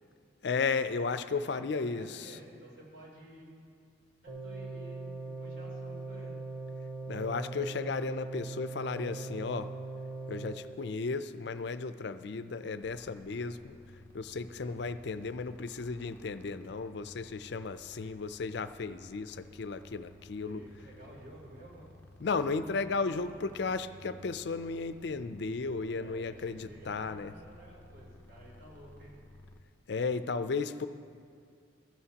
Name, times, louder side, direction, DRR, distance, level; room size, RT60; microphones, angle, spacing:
voice 1, 0.4-2.4 7.1-9.7 10.3-13.8 14.1-20.6 22.2-27.3 29.9-30.9, left 4 dB, 60° left, 11 dB, 0.4 m, -34 dB
voice 2, 1.4-3.5 4.2-6.4 14.6-14.7 18.0-18.1 20.4-21.9 23.0-23.5 25.9-29.2, right 1 dB, 55° right, -4 dB, 3.3 m, -52 dB
sound 1, 4.3-10.5, right 3 dB, 35° right, 1.1 m, -40 dB
sound 2, 12.8-29.6, left 2 dB, 10° left, 0.6 m, -55 dB
15.5 x 13.5 x 2.9 m, 2.4 s
head